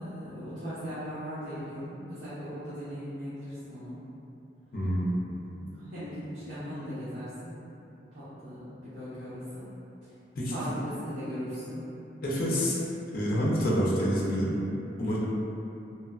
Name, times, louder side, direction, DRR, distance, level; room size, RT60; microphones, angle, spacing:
voice 1, 0.0-4.0 5.3-7.6 8.1-9.6 10.0-10.1 10.5-11.8 13.5-13.9, equal, 85° right, -14 dB, 0.7 m, -38 dB
voice 2, 4.7-5.1 10.4-10.7 12.2-12.8 13.1-14.5 15.0-15.2, equal, 55° left, -6 dB, 0.5 m, -27 dB
2.8 x 2.1 x 2.3 m, 2.8 s
head